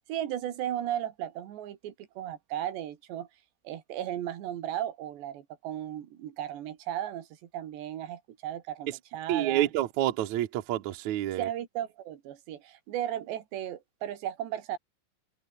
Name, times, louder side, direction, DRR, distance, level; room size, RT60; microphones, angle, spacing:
voice 1, 0.1-3.3 3.6-9.7 11.4-14.8, right 11 dB, 85° right, 4.2 m, -35 dB
voice 2, 9.3-11.5, right 13 dB, 65° right, 2.0 m, -28 dB
omnidirectional pair, 4.8 m